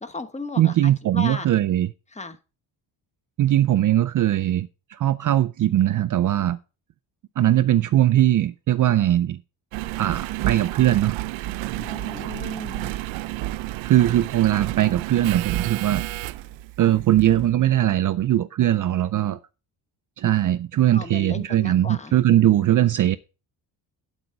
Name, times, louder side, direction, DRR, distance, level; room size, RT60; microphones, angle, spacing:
voice 1, 0.0-1.5 2.1-2.4 11.7-12.9 20.9-22.2, left 3 dB, 15° left, 1.1 m, -36 dB
voice 2, 0.6-1.9 3.4-6.6 7.4-9.4 10.0-11.2 13.8-16.0 16.8-19.4 20.2-23.2, right 13 dB, 45° right, 0.5 m, -20 dB
Engine, 9.7-17.6 18.2-18.3, right 16 dB, 85° right, 0.6 m, -30 dB
8.9 x 8.1 x 4.7 m
cardioid pair, 140°, 45 cm